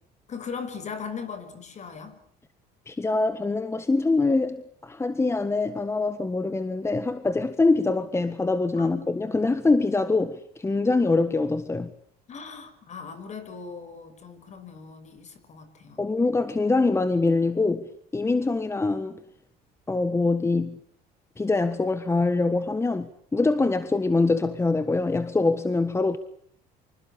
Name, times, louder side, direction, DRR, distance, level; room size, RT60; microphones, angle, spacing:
voice 1, 0.3-2.2 8.8-8.9 12.3-16.0, left 5 dB, 40° left, 6.2 m, -39 dB
voice 2, 2.9-11.9 16.0-19.2 19.9-20.8 21.4-26.2, left 3 dB, 15° left, 1.5 m, -24 dB
26.0 x 25.5 x 8.5 m
cardioid pair, 115°, 18 cm